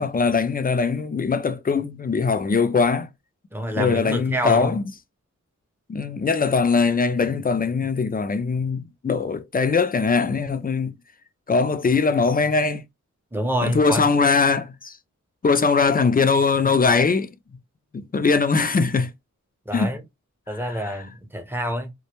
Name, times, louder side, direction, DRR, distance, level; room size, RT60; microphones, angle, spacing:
voice 1, 0.0-3.1 3.7-4.8 5.9-10.9 11.5-12.8 13.6-15.0 15.4-17.3 17.9-19.1 19.7-19.9 20.5-20.9, left 4 dB, 30° left, 0.4 m, -21 dB
voice 2, 3.5-4.7 13.3-14.0 19.7-20.0 20.5-21.9, equal, 5° right, 0.7 m, -27 dB
2.1 x 2.1 x 2.9 m
cardioid pair, 40°, 32 cm